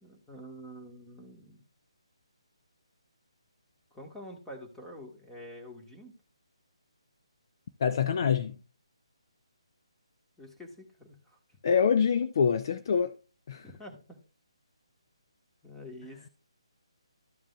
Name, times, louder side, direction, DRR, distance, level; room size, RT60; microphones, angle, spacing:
voice 1, 0.0-1.6 3.9-6.1 10.4-11.4 13.6-14.2 15.6-16.3, equal, 5° left, 1.6 m, -47 dB
voice 2, 7.8-8.6 11.6-13.1 13.5-13.6, left 7 dB, 40° left, 0.5 m, -25 dB
13.0 x 7.3 x 2.4 m
figure-of-eight pair, 145°, 3 cm